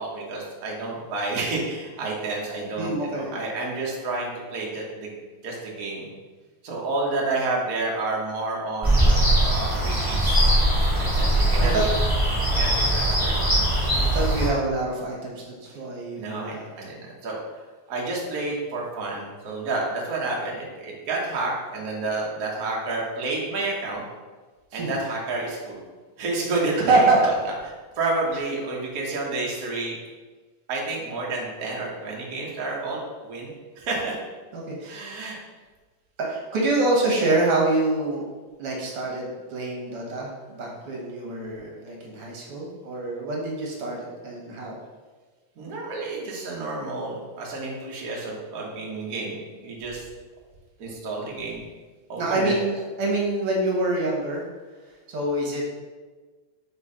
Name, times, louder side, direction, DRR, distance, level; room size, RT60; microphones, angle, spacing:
voice 1, 0.0-5.1 5.4-6.1 6.6-11.9 12.6-13.4 16.1-17.4 17.9-24.0 24.7-25.8 26.2-30.0 30.7-33.5 33.8-34.1 34.9-35.4 36.3-36.4 45.6-50.1 50.8-51.6 52.1-52.6, right 2 dB, 90° right, -3 dB, 0.7 m, -30 dB
voice 2, 2.8-3.3 11.1-11.9 13.7-16.6 24.7-24.9 26.8-27.2 34.5-35.0 36.2-38.3 38.6-44.8 52.2-54.4 55.1-55.7, right 2 dB, 60° right, -2 dB, 1.9 m, -26 dB
sound 1, 8.8-14.5, right 1 dB, 10° right, 1.2 m, -21 dB
4.5 x 4.2 x 4.9 m, 1.3 s
omnidirectional pair, 3.4 m